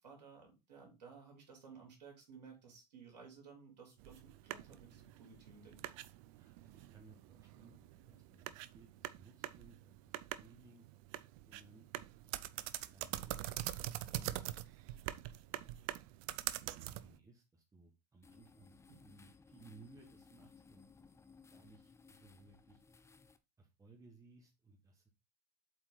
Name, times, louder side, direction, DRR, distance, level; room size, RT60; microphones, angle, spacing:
voice 1, 0.0-6.0 18.9-19.0, right 5 dB, 85° right, 0 dB, 3.4 m, -57 dB
sound 1, 4.0-17.2, right 15 dB, 55° right, 0.6 m, -45 dB
voice 2, 6.4-10.9 11.5-12.4 12.9-13.5 13.8-15.8 16.7-20.8 21.5-22.8 23.6-25.1, right 3 dB, 15° right, 2 dB, 1.7 m, -62 dB
sound 2, 18.2-23.4, left 5 dB, 15° left, 0.8 m, -62 dB
7.7 x 4.5 x 3.9 m, 0.25 s
hypercardioid pair, 95°, 21 cm